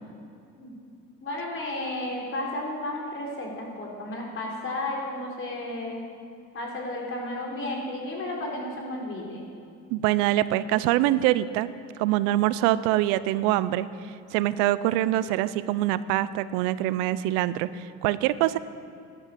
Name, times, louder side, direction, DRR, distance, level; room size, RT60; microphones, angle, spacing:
voice 1, 1.2-6.0 6.5-9.5, left 1 dB, 40° left, -1 dB, 3.9 m, -33 dB
voice 2, 9.9-11.7 12.0-13.9 14.3-18.6, right 14 dB, 85° right, 16 dB, 0.6 m, -24 dB
12.0 x 11.5 x 6.8 m, 2.4 s
supercardioid pair, 110°, 33 cm